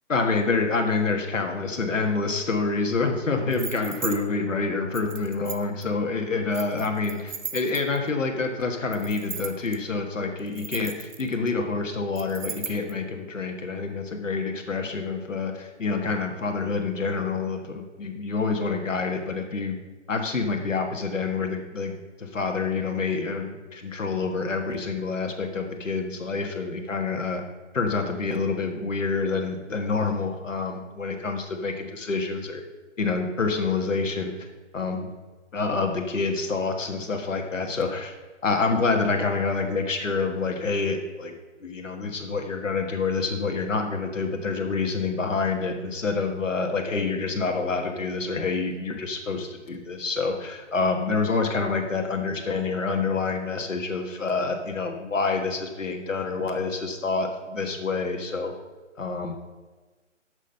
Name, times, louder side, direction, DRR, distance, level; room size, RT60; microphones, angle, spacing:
voice 1, 0.1-19.8 20.1-27.4 27.7-32.6 33.0-34.3 34.7-35.1 35.5-38.1 38.4-41.3 41.6-58.5 59.0-59.3, left 4 dB, 85° left, 4 dB, 1.6 m, -27 dB
sound 1, 3.5-4.2 4.9-5.8 6.5-8.1 8.9-9.8 10.4-11.5 12.2-12.9, right 5 dB, 90° right, 1.1 m, -36 dB
8.4 x 6.4 x 5.5 m, 1.3 s
hypercardioid pair, 160°, 37 cm